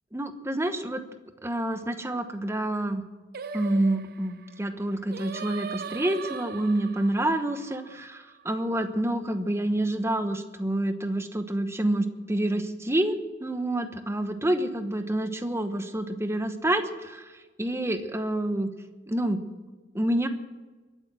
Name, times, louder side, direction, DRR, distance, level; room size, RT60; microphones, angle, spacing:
voice 1, 0.1-1.0 1.4-3.0 3.5-18.7 19.1-19.4 19.9-20.3, right 1 dB, 15° right, 8 dB, 1.0 m, -28 dB
Singing, 3.3-8.6, right 6 dB, 55° right, 0.6 m, -40 dB
22.5 x 9.1 x 6.2 m, 1.3 s
head